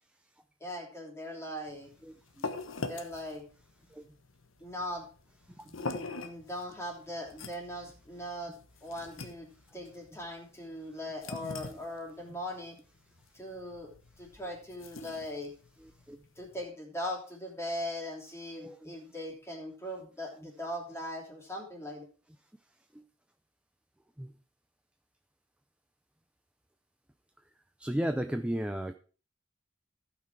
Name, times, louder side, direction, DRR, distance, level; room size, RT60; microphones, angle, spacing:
voice 1, 0.6-1.9 2.8-3.4 4.6-5.1 5.8-12.8 13.3-15.5 16.4-22.0, left 1 dB, 15° left, -2 dB, 3.1 m, -40 dB
sound 1, 1.7-16.7, left 3 dB, 80° left, 1.2 m, -44 dB
voice 2, 18.6-18.9 22.9-23.0 24.2-24.3 27.8-28.9, equal, 5° right, 7 dB, 0.4 m, -34 dB
15.5 x 6.0 x 4.6 m, 0.38 s
head